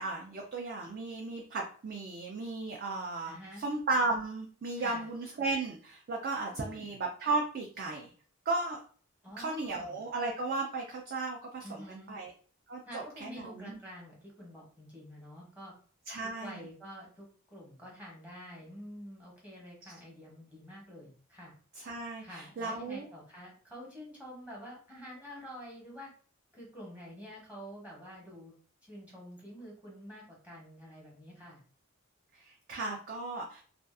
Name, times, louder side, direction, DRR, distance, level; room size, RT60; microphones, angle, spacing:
voice 1, 0.0-8.1 8.5-8.8 9.4-12.3 12.7-13.8 16.1-16.6 21.8-23.0 32.3-33.6, right 3 dB, 45° right, 0 dB, 0.4 m, -35 dB
voice 2, 3.3-3.6 4.7-5.1 6.5-7.0 9.2-10.0 11.6-12.2 12.9-15.7 16.4-21.5 22.2-26.1 26.5-28.5 28.8-31.6, equal, 5° right, -4 dB, 0.8 m, -48 dB
2.5 x 2.3 x 2.4 m, 0.43 s
head